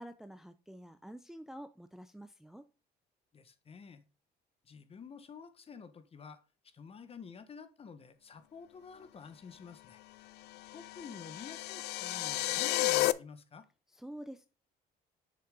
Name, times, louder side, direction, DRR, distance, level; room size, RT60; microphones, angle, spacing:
voice 1, 0.0-2.7 13.9-14.5, equal, ahead, 0.5 m, -48 dB
voice 2, 3.3-4.0 4.6-10.0 10.7-13.6, left 5 dB, 35° left, 1.3 m, -50 dB
sound 1, 10.6-13.1, left 19 dB, 80° left, 0.5 m, -32 dB
6.8 x 6.5 x 3.7 m
cardioid pair, 110°, 17 cm